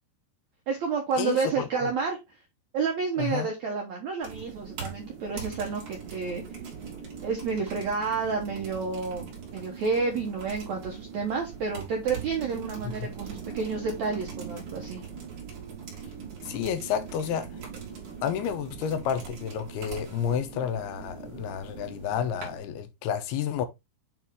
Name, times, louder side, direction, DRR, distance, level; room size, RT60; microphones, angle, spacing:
voice 1, 0.7-2.4 2.7-6.4 7.2-15.0, right 5 dB, 75° right, 1.6 m, -30 dB
voice 2, 1.2-1.9 3.2-3.5 12.8-12.9 16.4-17.6 18.2-23.7, left 8 dB, 80° left, 2.5 m, -30 dB
sound 1, 4.2-22.6, right 6 dB, 50° right, 3.5 m, -41 dB
8.9 x 3.4 x 3.4 m
omnidirectional pair, 4.8 m